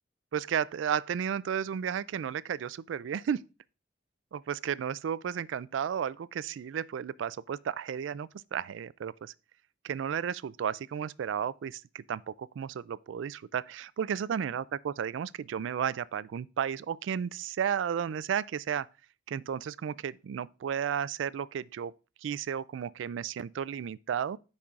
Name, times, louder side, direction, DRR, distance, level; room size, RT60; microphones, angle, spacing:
voice 1, 0.3-3.4 4.3-9.3 9.8-18.9 19.3-21.9 22.2-24.4, right 8 dB, 85° right, 0.3 m, -33 dB
13.0 x 5.4 x 2.5 m
head